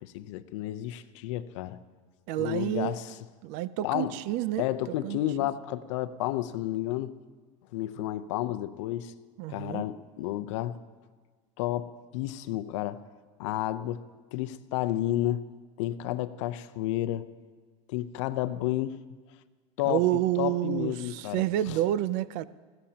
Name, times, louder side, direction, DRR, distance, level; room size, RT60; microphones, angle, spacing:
voice 1, 0.0-1.8 2.4-3.2 3.8-4.2 4.6-7.1 7.7-9.1 9.5-10.8 11.6-13.0 13.4-14.0 14.3-15.4 15.8-17.3 17.9-19.0 19.8-21.8, left 14 dB, 70° left, 0.7 m, -31 dB
voice 2, 2.3-3.0 3.4-4.7 5.0-5.2 9.4-9.8 19.9-22.4, right 14 dB, 55° right, 0.5 m, -29 dB
21.0 x 15.5 x 2.9 m
supercardioid pair, 145°, 16 cm